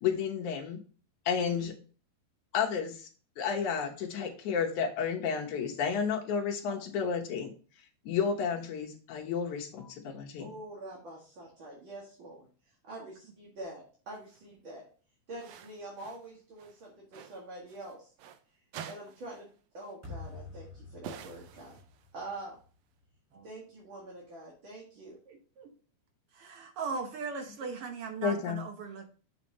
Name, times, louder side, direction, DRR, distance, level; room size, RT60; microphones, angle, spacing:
voice 1, 0.0-0.8 1.3-1.7 2.5-3.1 3.4-7.5 8.1-10.5 28.2-28.6, left 6 dB, 70° left, 2 dB, 2.5 m, -31 dB
voice 2, 10.4-12.5 12.8-14.9 15.3-18.1 18.9-19.5 19.7-21.8 22.1-22.6 23.4-25.2, right 2 dB, 45° right, -4 dB, 2.3 m, -45 dB
sound 1, 14.1-14.4 15.4-16.3 16.6-18.4 18.7-19.5 19.8-19.9 21.0-22.2, right 8 dB, 85° right, 1.4 m, -48 dB
sound 2, 20.0-23.1, left 3 dB, 5° right, 1.4 m, -48 dB
voice 3, 25.3-25.7 26.3-29.1, right 5 dB, 65° right, 4 dB, 1.5 m, -39 dB
7.3 x 5.9 x 3.0 m, 0.39 s
omnidirectional pair, 3.7 m